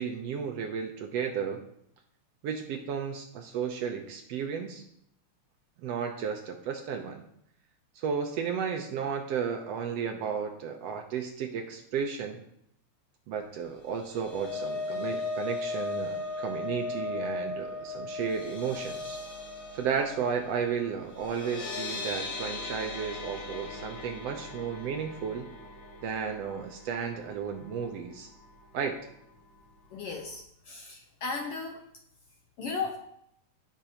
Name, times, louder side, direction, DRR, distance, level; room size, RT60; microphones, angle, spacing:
voice 1, 0.0-1.6 2.4-4.8 5.8-7.2 8.0-12.4 13.3-19.2 19.7-25.5 26.0-28.3 28.7-29.0, right 6 dB, 70° right, 3 dB, 1.7 m, -33 dB
sound 1, 13.8-28.0 28.4-28.6 28.9-29.0, left 3 dB, 55° left, 2.9 m, -38 dB
voice 2, 29.9-31.8 32.6-33.0, left 4 dB, 70° left, 3 dB, 1.5 m, -35 dB
16.0 x 6.0 x 2.9 m, 0.72 s
omnidirectional pair, 3.4 m